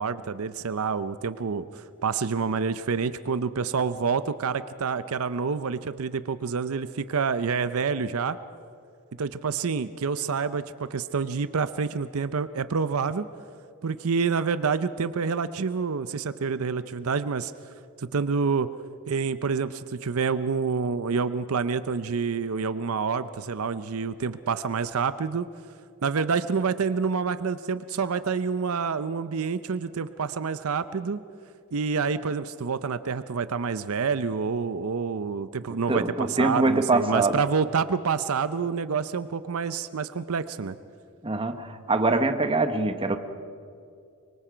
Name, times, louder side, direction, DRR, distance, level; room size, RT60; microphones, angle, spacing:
voice 1, 0.0-8.4 9.2-13.3 13.8-17.5 18.0-18.7 19.1-25.5 26.0-31.2 31.7-40.8, right 5 dB, 75° right, 13 dB, 0.6 m, -28 dB
voice 2, 35.9-37.4 41.2-43.2, right 2 dB, 25° right, 8 dB, 1.1 m, -24 dB
24.5 x 24.0 x 5.1 m, 2.4 s
head